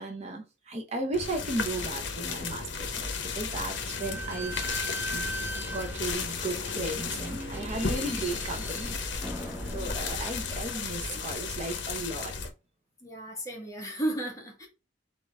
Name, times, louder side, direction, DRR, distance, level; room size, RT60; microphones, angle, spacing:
voice 1, 0.0-4.6 5.1-5.3 5.7-9.0 9.7-12.3, right 2 dB, 35° right, 0.8 m, -35 dB
sound 1, 1.1-12.5, left 5 dB, 65° left, 0.9 m, -34 dB
voice 2, 3.3-3.7 10.7-11.2 13.0-14.7, right 1 dB, 20° left, 1.5 m, -35 dB
Slam / Squeak, 3.8-11.0, right 1 dB, 10° right, 1.1 m, -40 dB
4.0 x 3.7 x 3.2 m
head